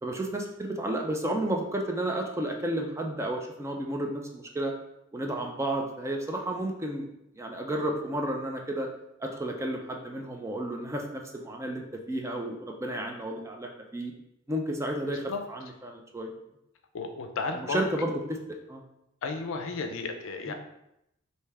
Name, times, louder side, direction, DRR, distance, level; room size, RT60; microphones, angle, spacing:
voice 1, 0.0-4.7 5.1-7.1 7.4-8.9 9.2-14.1 14.5-16.3 17.5-18.8 20.5-20.6, right 1 dB, 15° right, 1 dB, 0.4 m, -32 dB
voice 2, 16.9-17.8 19.2-20.5, left 4 dB, 65° left, 5 dB, 0.4 m, -33 dB
3.3 x 2.7 x 3.3 m, 0.83 s
head